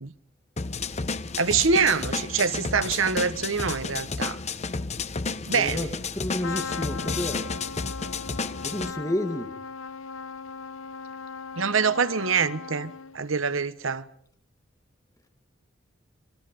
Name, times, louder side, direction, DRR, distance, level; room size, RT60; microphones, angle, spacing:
sound 1, 0.6-8.9, left 4 dB, 35° left, 0.9 m, -32 dB
voice 1, 1.4-4.4 5.5-5.9 11.6-14.0, right 5 dB, 85° right, 1.2 m, -25 dB
voice 2, 5.5-7.5 8.6-9.5, left 1 dB, 15° left, 1.9 m, -31 dB
Trumpet, 6.4-13.3, left 5 dB, 80° left, 0.8 m, -38 dB
27.0 x 23.5 x 5.3 m
head